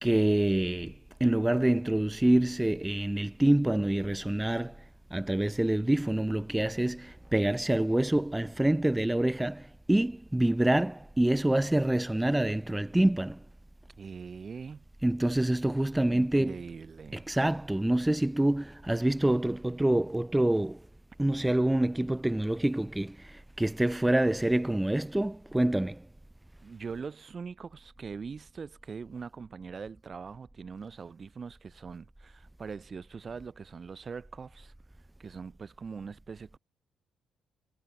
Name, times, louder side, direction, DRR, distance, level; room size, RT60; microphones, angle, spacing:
voice 1, 0.0-13.4 15.0-16.5 17.1-20.9 21.2-26.1, right 1 dB, 10° right, 1.6 m, -26 dB
voice 2, 14.0-14.9 16.1-17.2 26.6-34.7 35.2-36.6, right 5 dB, 40° right, 4.1 m, -42 dB
cardioid pair, 90°, 0 cm